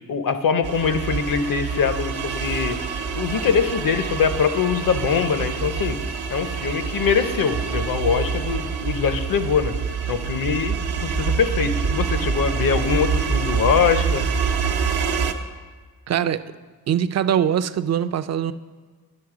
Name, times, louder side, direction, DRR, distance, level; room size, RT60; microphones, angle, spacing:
voice 1, 0.1-2.8 3.1-6.0 6.3-9.7 10.1-14.3, left 6 dB, 65° left, 11 dB, 0.7 m, -23 dB
sound 1, 0.6-15.3, right 6 dB, 80° right, 0.8 m, -26 dB
voice 2, 16.1-16.4 16.9-18.5, right 9 dB, 45° right, 12 dB, 0.4 m, -22 dB
11.0 x 6.0 x 4.8 m, 1.5 s
cardioid pair, 85°, 37 cm